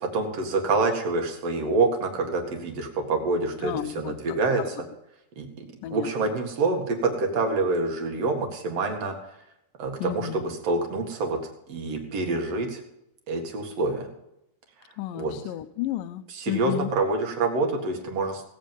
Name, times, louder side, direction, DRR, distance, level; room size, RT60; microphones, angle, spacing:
voice 1, 0.0-4.8 5.4-5.7 5.9-9.1 9.8-11.4 11.7-12.8 13.3-14.1 15.1-15.3 16.3-18.4, right 3 dB, 50° right, 3 dB, 2.6 m, -26 dB
voice 2, 3.6-4.7 5.8-6.4 10.0-10.4 15.0-16.9, left 13 dB, 80° left, 10 dB, 2.1 m, -33 dB
17.5 x 8.9 x 5.4 m, 0.84 s
omnidirectional pair, 4.3 m